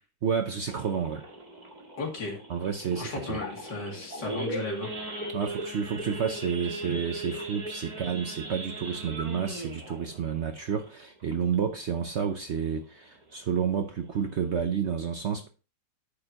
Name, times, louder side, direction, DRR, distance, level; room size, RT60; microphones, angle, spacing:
voice 1, 0.2-1.2 2.5-3.4 5.3-15.5, right 7 dB, 60° right, 0.7 m, -30 dB
Idling / Accelerating revving vroom / Sawing, 0.7-11.8 12.2-12.4 12.6-12.7 13.2-13.5 14.0-14.1 14.3-14.6, right 1 dB, 25° right, 1.7 m, -39 dB
voice 2, 2.0-2.4 2.9-4.9, left 3 dB, 75° left, 3.1 m, -34 dB
9.6 x 6.7 x 2.9 m
omnidirectional pair, 1.9 m